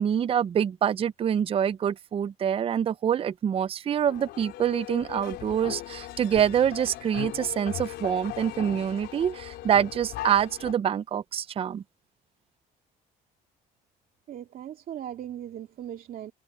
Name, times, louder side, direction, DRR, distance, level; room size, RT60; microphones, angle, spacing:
voice 1, 0.0-11.8, right 9 dB, 35° right, 0.5 m, -26 dB
sound 1, 4.1-10.7, left 15 dB, 80° left, 4.6 m, -38 dB
voice 2, 14.3-16.3, right 10 dB, 60° right, 2.5 m, -38 dB
cardioid pair, 110°, 17 cm